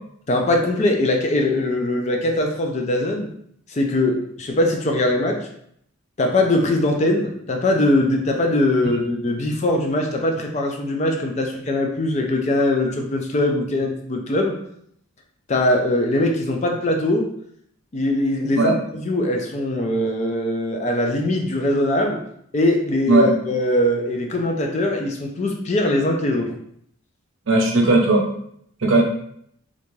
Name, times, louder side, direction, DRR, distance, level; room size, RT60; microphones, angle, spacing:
voice 1, 0.3-3.3 3.7-5.5 6.2-14.6 15.5-17.3 17.9-22.2 22.5-26.5, left 1 dB, 30° left, 2 dB, 0.3 m, -21 dB
voice 2, 27.5-28.2 28.8-29.0, right 2 dB, 60° right, 1 dB, 0.6 m, -16 dB
2.5 x 2.2 x 3.0 m, 0.69 s
head